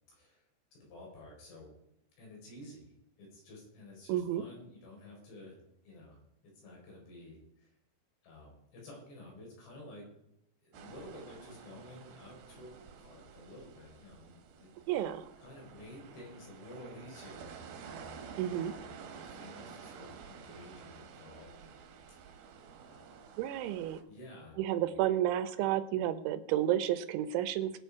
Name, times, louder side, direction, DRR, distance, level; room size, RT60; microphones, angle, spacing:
voice 1, 0.1-1.7 2.2-5.6 5.8-7.7 8.2-10.1 10.6-15.1 15.4-17.5 17.8-18.2 18.6-21.8 22.2-22.4 22.9-23.1 24.1-25.0, left 1 dB, 65° left, -2 dB, 6.5 m, -52 dB
voice 2, 4.1-4.4 14.9-15.3 18.4-18.7 23.4-24.0 24.6-27.8, right 12 dB, 85° right, 12 dB, 3.3 m, -31 dB
sound 1, 10.7-24.0, right 6 dB, 65° right, 2.7 m, -51 dB
21.5 x 7.6 x 4.8 m, 0.80 s
omnidirectional pair, 5.4 m